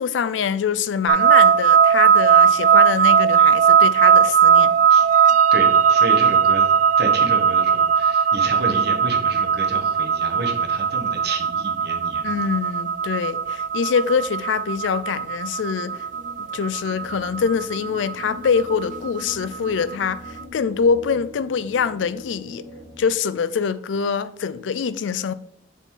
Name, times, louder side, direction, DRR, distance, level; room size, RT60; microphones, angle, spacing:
voice 1, 0.0-4.7 12.2-16.1 16.4-22.6 23.0-25.3, left 6 dB, 90° left, 0.4 m, -24 dB
sound 1, 1.1-20.2, right 7 dB, 45° right, 0.3 m, -18 dB
voice 2, 5.5-12.3, right 2 dB, 60° right, 1.2 m, -31 dB
sound 2, 15.7-23.0, left 1 dB, 10° right, 1.8 m, -42 dB
7.1 x 4.1 x 3.8 m
head